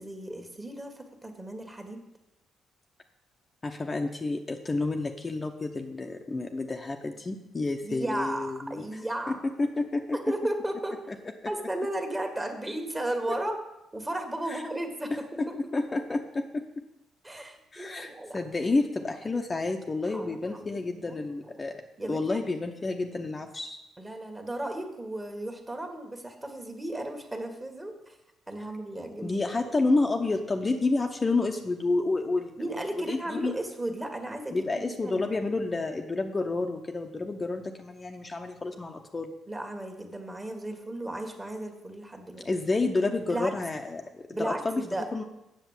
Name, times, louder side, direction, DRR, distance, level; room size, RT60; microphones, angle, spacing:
voice 1, 0.0-2.0 7.8-9.4 10.1-11.0 11.5-13.5 13.9-15.1 15.5-15.6 17.2-18.4 20.1-21.6 22.0-22.4 24.0-28.2 28.5-29.4 32.6-35.3 39.5-42.5 43.3-43.5 44.3-45.1, right 1 dB, 20° right, 5 dB, 1.7 m, -35 dB
voice 2, 3.6-9.0 9.3-10.2 11.1-11.2 11.4-11.5 13.3-13.5 14.5-14.6 15.1-16.8 17.7-23.8 29.2-32.6 32.9-33.5 34.5-39.3 42.4-44.8 45.1-45.2, left 3 dB, 25° left, 3 dB, 0.8 m, -30 dB
8.1 x 6.9 x 7.2 m, 0.90 s
cardioid pair, 90°, 0 cm